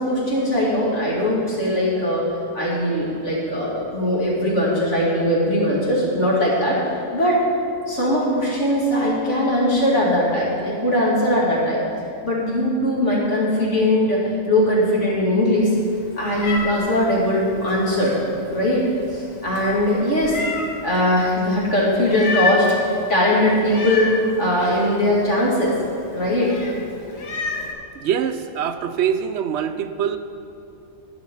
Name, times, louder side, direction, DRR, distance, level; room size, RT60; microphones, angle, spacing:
voice 1, 0.0-2.3 2.5-6.8 7.1-7.4 7.9-11.8 12.2-15.7 16.2-18.2 18.5-20.4 20.8-24.1 24.4-25.7 26.1-26.6, left 1 dB, 60° left, -5 dB, 3.1 m, -20 dB
Meow, 15.7-27.7, left 4 dB, 80° left, 1.7 m, -31 dB
voice 2, 28.0-30.2, right 8 dB, 65° right, 10 dB, 0.8 m, -24 dB
11.0 x 10.5 x 5.6 m, 2.7 s
omnidirectional pair, 1.4 m